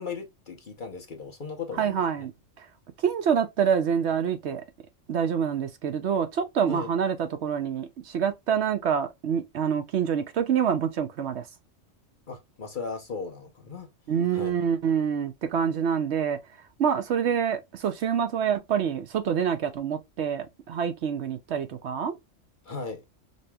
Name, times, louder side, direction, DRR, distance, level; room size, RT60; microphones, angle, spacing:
voice 1, 0.0-2.3 6.7-6.9 12.3-13.9 14.3-14.6 22.6-23.0, left 5 dB, 45° left, 0.9 m, -37 dB
voice 2, 1.8-2.3 3.0-4.6 5.1-11.4 14.1-16.4 16.8-22.2, right 7 dB, 65° right, 0.9 m, -26 dB
5.2 x 2.9 x 2.2 m
omnidirectional pair, 1.3 m